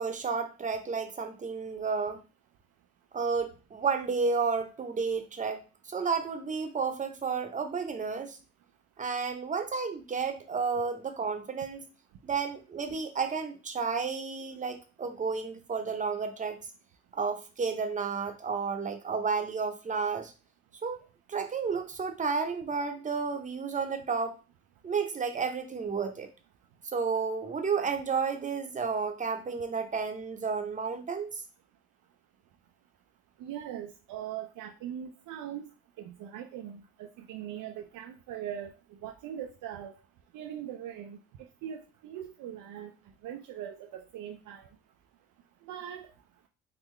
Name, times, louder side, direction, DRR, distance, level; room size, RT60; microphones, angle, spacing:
voice 1, 0.0-2.2 3.1-8.4 9.0-11.9 12.2-16.6 17.1-20.3 20.8-24.4 24.8-26.3 26.8-31.4, right 5 dB, 25° right, 6 dB, 0.6 m, -32 dB
voice 2, 33.4-35.7 36.0-38.7 39.0-39.9 40.3-41.2 41.6-42.9 43.2-44.7 45.7-46.1, right 10 dB, 80° right, 3 dB, 0.5 m, -40 dB
3.7 x 2.3 x 3.1 m, 0.32 s
cardioid pair, 90°, 30 cm